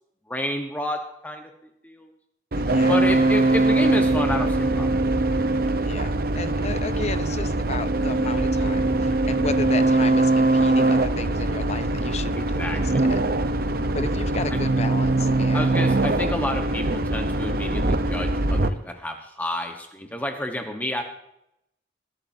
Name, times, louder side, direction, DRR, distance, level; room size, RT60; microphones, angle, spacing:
voice 1, 0.3-1.4 1.8-2.1 2.9-4.9 12.6-13.0 15.5-21.0, left 1 dB, 10° left, 3 dB, 1.2 m, -29 dB
sound 1, 2.5-18.7, right 2 dB, 55° right, 0.9 m, -22 dB
voice 2, 2.6-3.0 5.8-12.8 13.1-13.2 13.9-15.8, left 3 dB, 40° left, 11 dB, 0.8 m, -33 dB
21.0 x 11.5 x 2.8 m, 0.80 s
head